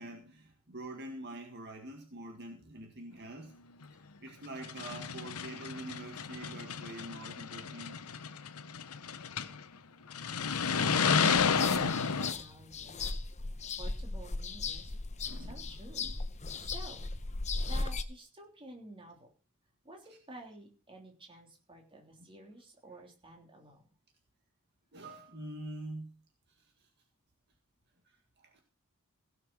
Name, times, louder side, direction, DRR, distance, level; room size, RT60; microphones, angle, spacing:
voice 1, 0.0-3.5 4.2-8.1 15.2-15.7 16.0-16.1 24.9-26.2 26.6-26.9 28.1-28.6, right 1 dB, 50° right, 1.9 m, -45 dB
sound 1, 3.8-3.9 4.5-9.6 10.1-12.3, left 6 dB, 80° left, 0.9 m, -31 dB
voice 2, 10.6-13.0 13.8-14.9 15.3-16.1 16.6-17.0 17.6-19.3 19.8-23.9, right 2 dB, 25° right, 3.3 m, -51 dB
sound 2, 11.2-18.0, left 3 dB, 30° left, 0.9 m, -37 dB
16.5 x 6.7 x 6.3 m
head